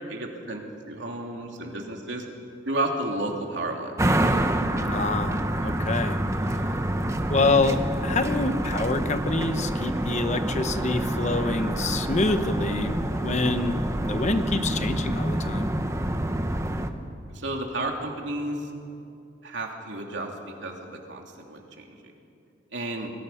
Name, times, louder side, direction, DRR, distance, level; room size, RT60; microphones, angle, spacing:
voice 1, 0.1-2.2 2.6-4.0 17.3-18.7 19.4-22.1 22.7-23.1, right 1 dB, 70° right, 1 dB, 3.1 m, -32 dB
sound 1, 4.0-16.9, right 1 dB, 15° right, 1.1 m, -27 dB
voice 2, 4.8-6.2 7.3-13.8 14.0-15.7, left 3 dB, 40° left, 9 dB, 1.1 m, -26 dB
29.0 x 21.0 x 5.8 m, 2.5 s
head